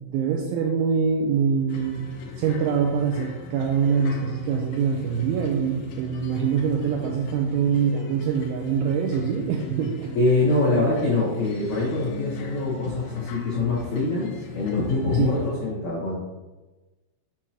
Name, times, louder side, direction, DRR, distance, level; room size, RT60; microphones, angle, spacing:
voice 1, 0.0-2.0 2.4-10.1 15.2-15.4, right 6 dB, 85° right, 2 dB, 2.7 m, -24 dB
sound 1, 1.7-15.5, left 5 dB, 90° left, 2.3 m, -40 dB
voice 2, 10.1-16.3, left 2 dB, 75° left, -7 dB, 1.6 m, -24 dB
8.1 x 6.1 x 3.0 m, 1.1 s
omnidirectional pair, 6.0 m